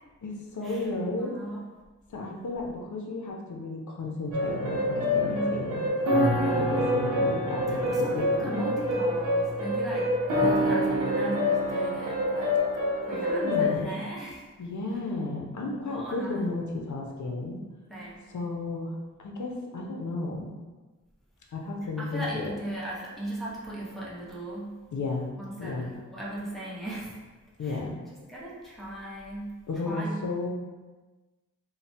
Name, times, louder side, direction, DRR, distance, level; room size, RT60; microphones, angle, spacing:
voice 1, 0.2-1.3 2.1-5.9 6.5-8.7 13.1-13.9 14.6-17.6 18.3-20.5 21.5-22.5 24.9-25.3 25.6-25.9 27.6-28.0 29.7-30.5, left 2 dB, 70° left, 1 dB, 0.5 m, -33 dB
voice 2, 1.2-1.6 5.0-5.6 7.9-12.6 13.1-14.5 15.8-16.4 17.9-18.2 22.0-24.8 25.4-27.2 27.6-27.8 28.3-29.6 29.8-30.2, right 1 dB, ahead, -7 dB, 0.7 m, -37 dB
sound 1, 4.3-13.7, left 1 dB, 90° right, 0.6 m, -26 dB
3.2 x 2.1 x 2.7 m, 1.3 s
wide cardioid pair, 100°, 31 cm